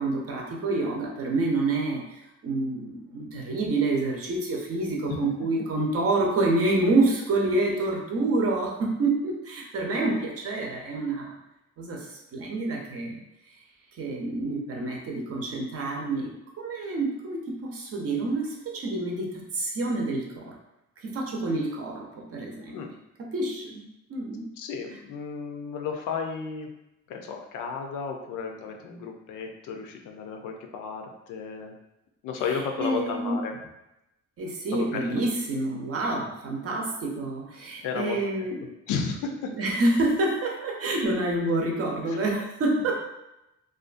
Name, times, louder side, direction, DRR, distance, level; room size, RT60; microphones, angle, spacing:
voice 1, 0.0-11.4 11.8-13.2 14.0-16.3 16.6-20.6 21.0-22.8 23.2-24.5 32.5-33.5 34.4-38.6 39.6-43.0, right 2 dB, 50° right, 0 dB, 0.6 m, -28 dB
voice 2, 24.6-26.7 27.1-31.7 32.2-33.6 34.7-35.2 37.8-38.2 38.9-39.5 42.1-42.2, left 5 dB, 85° left, 3 dB, 0.5 m, -33 dB
2.5 x 2.3 x 2.4 m, 0.89 s
cardioid pair, 90°, 30 cm